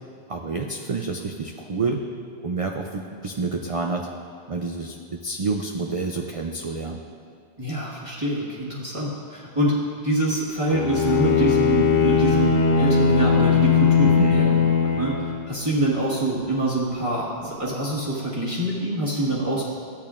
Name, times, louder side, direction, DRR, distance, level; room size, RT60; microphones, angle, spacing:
voice 1, 0.3-2.0 2.4-4.1 4.5-7.0 14.0-14.5, right 4 dB, 55° right, 2 dB, 0.4 m, -28 dB
voice 2, 7.6-9.8 10.0-14.5 14.8-19.6, right 2 dB, 30° right, -8 dB, 1.5 m, -25 dB
Bowed string instrument, 10.7-15.5, left 6 dB, 60° left, 0.9 m, -19 dB
13.0 x 8.6 x 2.5 m, 2.3 s
omnidirectional pair, 1.1 m